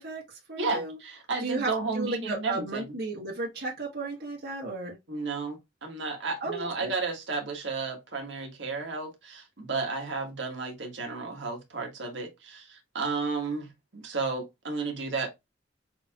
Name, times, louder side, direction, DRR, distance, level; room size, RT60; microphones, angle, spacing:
voice 1, 0.0-1.0 1.4-5.0 6.4-6.9, right 3 dB, 55° right, 1.4 m, -34 dB
voice 2, 0.6-2.9 5.1-15.3, right 4 dB, 75° right, 1.6 m, -33 dB
6.6 x 2.8 x 2.4 m
head